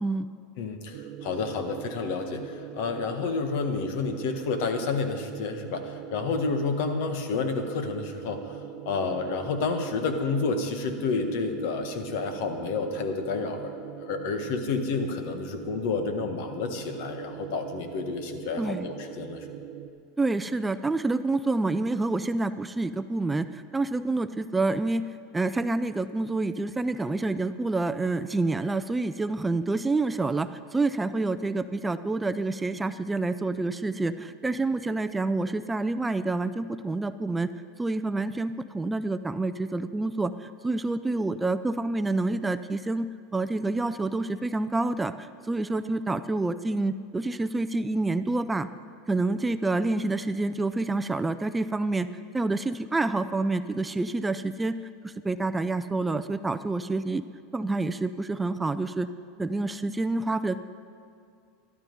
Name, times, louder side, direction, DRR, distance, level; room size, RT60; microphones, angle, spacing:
voice 1, 0.6-8.6 8.8-19.6, left 4 dB, 70° left, 6 dB, 1.5 m, -30 dB
sound 1, 0.9-19.9, right 9 dB, 65° right, 0.9 m, -41 dB
voice 2, 18.6-18.9 20.2-25.1 25.3-37.5 37.8-48.7 49.1-52.1 52.3-54.8 55.0-57.2 57.5-59.1 59.4-60.6, right 2 dB, 10° right, 12 dB, 0.4 m, -28 dB
12.5 x 12.5 x 5.3 m, 2.4 s
supercardioid pair, 115°, 0 cm